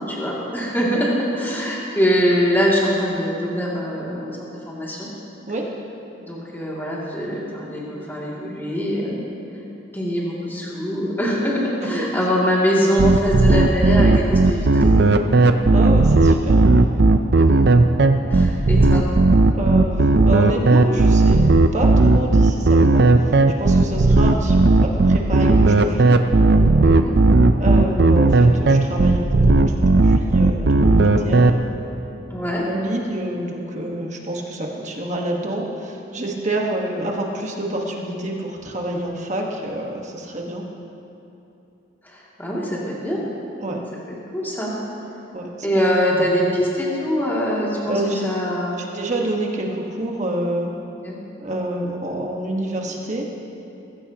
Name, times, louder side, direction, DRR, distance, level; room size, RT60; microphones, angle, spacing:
voice 1, 0.0-5.1 6.3-9.4 9.9-15.6 17.3-17.6 18.3-19.0 26.8-27.1 32.3-32.6 42.0-43.3 44.1-44.7 45.6-48.8 51.0-51.2, equal, 10° left, -6 dB, 2.5 m, -23 dB
sound 1, 13.0-31.5, right 2 dB, 60° right, 0.6 m, -14 dB
voice 2, 15.7-16.7 19.5-23.3 23.6-26.2 27.6-31.5 32.6-40.6 43.6-43.8 45.3-45.8 46.1-46.3 47.9-48.3 48.8-50.7 51.4-53.2, right 1 dB, 40° right, 0 dB, 1.4 m, -27 dB
20.5 x 15.5 x 2.9 m, 2.8 s
head